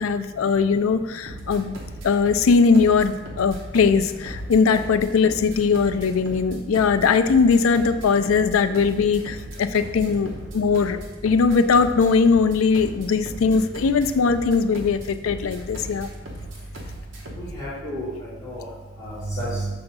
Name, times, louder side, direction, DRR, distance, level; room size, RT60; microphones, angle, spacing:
voice 1, 0.0-1.7 2.0-16.1, left 5 dB, 85° left, 11 dB, 0.4 m, -20 dB
sound 1, 1.3-17.6, right 1 dB, 65° right, 1.0 m, -38 dB
voice 2, 17.4-18.6 19.0-19.7, right 1 dB, 15° left, -11 dB, 2.1 m, -31 dB
6.9 x 3.5 x 5.4 m, 1.2 s
head